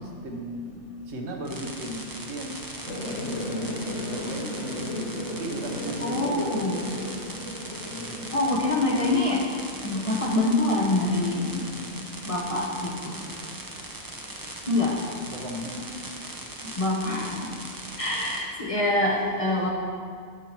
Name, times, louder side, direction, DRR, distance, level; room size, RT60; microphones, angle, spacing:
voice 1, 0.0-7.1 7.8-9.2 15.2-15.9, equal, 70° right, 1 dB, 1.2 m, -37 dB
sound 1, 1.5-18.4, right 2 dB, 25° right, 0.6 m, -40 dB
sound 2, 2.9-14.7, left 1 dB, 80° left, 1.3 m, -37 dB
voice 2, 6.0-6.9 8.3-9.4 9.8-11.7 12.2-13.2 14.7-15.0 16.7-17.5 18.0-19.7, left 2 dB, 30° left, -3 dB, 0.9 m, -25 dB
13.0 x 5.5 x 3.0 m, 2.1 s
omnidirectional pair, 1.2 m